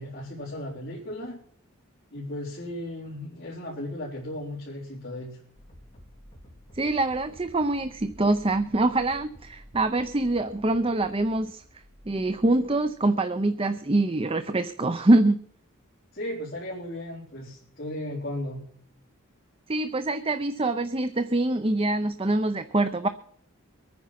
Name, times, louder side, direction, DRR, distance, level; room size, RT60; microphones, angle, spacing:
voice 1, 0.0-1.4 2.1-5.4 16.1-18.6, left 1 dB, 45° left, -6 dB, 4.1 m, -35 dB
sound 1, 5.5-13.2, equal, 30° left, 3.9 m, -52 dB
voice 2, 6.7-11.6 12.1-15.4 19.7-23.1, right 2 dB, 25° right, 10 dB, 0.6 m, -24 dB
23.0 x 9.5 x 5.9 m, 0.62 s
head